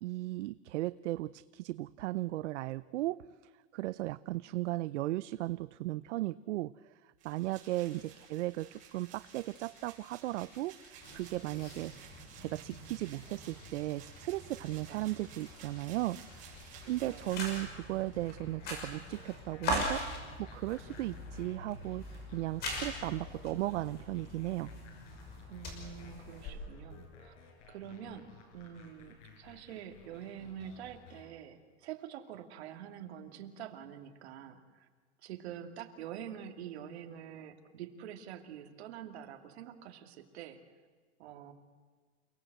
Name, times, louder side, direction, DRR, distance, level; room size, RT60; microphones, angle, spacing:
voice 1, 0.0-3.2 3.7-6.9 7.2-16.5 16.8-20.0 20.4-22.0 22.3-24.7, right 17 dB, 80° right, 16 dB, 0.6 m, -36 dB
sound 1, 7.2-18.4, right 6 dB, 20° right, 7.4 m, -55 dB
sound 2, 11.0-26.5, left 1 dB, 25° left, 5.8 m, -42 dB
voice 2, 14.9-15.2 16.8-17.2 25.5-27.4 27.7-34.9 35.2-40.6 41.2-41.5, right 9 dB, 65° right, 5 dB, 2.6 m, -46 dB
sound 3, 16.5-31.3, left 5 dB, 85° left, 6.9 m, -57 dB
29.0 x 18.5 x 7.9 m, 1.5 s
supercardioid pair, 175°, 35 cm